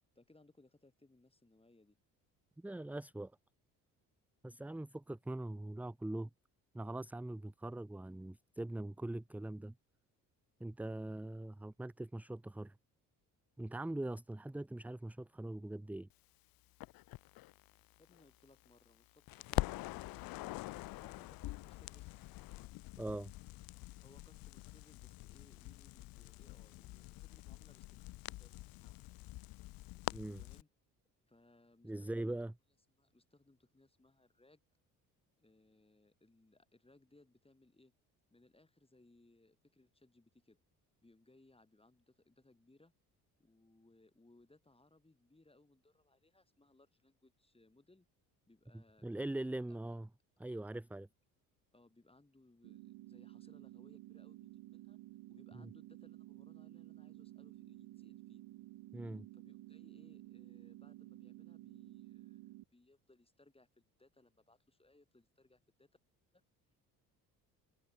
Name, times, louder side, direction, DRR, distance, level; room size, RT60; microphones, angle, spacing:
voice 1, 0.2-2.0 18.0-19.8 21.0-22.2 24.0-29.0 30.2-30.7 31.3-32.4 33.0-34.6 35.4-37.9 38.3-40.6 41.0-42.9 43.4-48.1 48.5-49.8 50.4-50.7 51.7-55.0 55.3-58.4 59.3-62.4 62.7-65.9 66.3-66.4, left 2 dB, 10° left, 3.7 m, -67 dB
voice 2, 2.6-3.3 4.4-6.3 6.7-9.7 10.6-12.7 13.6-16.1 23.0-23.3 30.1-30.4 31.8-32.5 48.7-50.1 50.4-51.1 55.5-55.7 58.9-59.3, right 1 dB, 5° right, 0.6 m, -42 dB
Crackle, 16.8-19.0 19.3-30.6, left 19 dB, 50° left, 0.6 m, -45 dB
sound 1, 52.6-62.6, right 17 dB, 60° right, 1.5 m, -53 dB
open air
hypercardioid pair, 55°, 46 cm